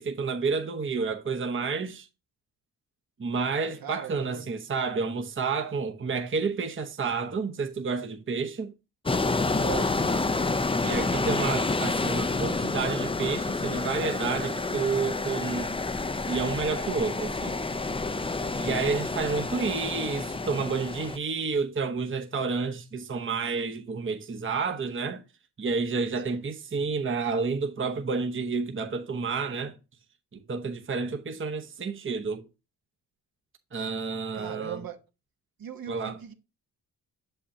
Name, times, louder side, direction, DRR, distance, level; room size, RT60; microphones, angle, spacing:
voice 1, 0.0-2.1 3.2-8.7 10.8-15.8 16.3-17.6 18.6-25.2 25.6-29.7 30.3-32.4 33.7-34.8 35.9-36.2, right 4 dB, 30° right, 1.0 m, -30 dB
voice 2, 3.8-4.5 9.5-10.4 19.4-20.3 26.2-26.4 34.3-35.0 35.6-36.3, right 8 dB, 55° right, 1.2 m, -41 dB
sound 1, 9.1-21.2, left 3 dB, 15° left, 0.6 m, -29 dB
7.0 x 5.6 x 2.8 m
supercardioid pair, 45°, 42 cm